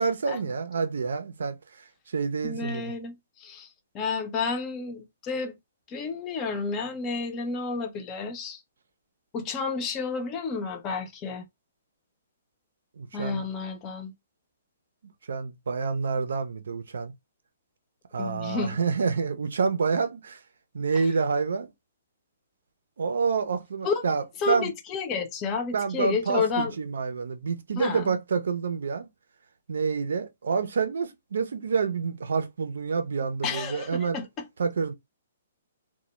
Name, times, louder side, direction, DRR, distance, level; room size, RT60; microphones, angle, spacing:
voice 1, 0.0-1.6 2.1-2.9 13.0-13.5 15.3-17.1 18.1-20.4 20.7-21.7 23.0-24.7 25.7-29.1 29.7-34.2 34.6-34.9, right 5 dB, 75° right, 0.5 m, -28 dB
voice 2, 2.4-3.7 3.9-5.6 5.9-8.6 9.3-11.4 13.1-14.1 18.2-18.8 23.8-24.0 24.4-26.7 27.8-28.2 33.4-34.4, left 5 dB, 25° left, 0.6 m, -31 dB
2.1 x 2.1 x 2.9 m
hypercardioid pair, 130°, 0 cm